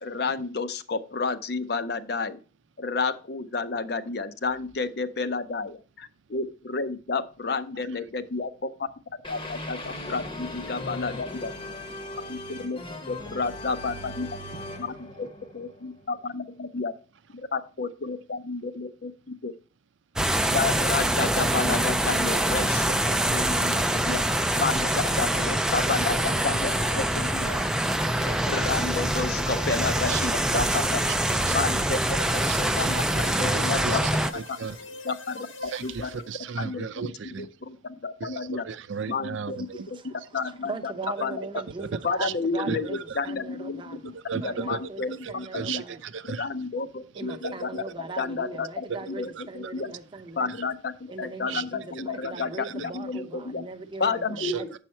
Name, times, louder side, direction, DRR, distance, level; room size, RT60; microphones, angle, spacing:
voice 1, 0.0-2.4 2.8-8.9 9.3-9.8 10.1-11.5 12.3-12.8 13.1-14.3 14.8-15.3 15.5-16.9 17.3-19.5 20.5-24.2 24.6-27.6 28.2-30.7 30.9-31.0 31.5-32.0 32.4-34.0 34.5-34.6 35.0-36.1 36.6-38.7 39.1-40.9 41.2-41.4 42.0-45.8 46.4-49.9 50.3-53.7 54.0-54.7, left 4 dB, 55° left, 0.5 m, -31 dB
sound 1, 9.2-16.2, left 1 dB, 25° left, 0.8 m, -38 dB
sound 2, 20.2-34.3, right 1 dB, 5° right, 0.3 m, -25 dB
sound 3, 24.7-36.5, left 3 dB, 85° left, 0.8 m, -42 dB
voice 2, 30.5-30.8 31.4-31.6 32.5-32.9 33.3-34.8 35.6-37.5 38.2-39.9 41.8-41.9 42.2-42.3 42.7-43.2 44.1-44.8 45.2-46.5 47.3-47.8 48.9-49.0 49.3-49.7 50.5-50.6 51.5-51.6 52.4-52.7 54.4-54.6, right 6 dB, 80° right, 0.5 m, -35 dB
voice 3, 39.7-40.2 40.6-43.0 43.2-44.0 44.3-46.0 47.2-50.5 51.1-54.7, right 3 dB, 25° right, 0.7 m, -39 dB
7.3 x 5.6 x 4.3 m
head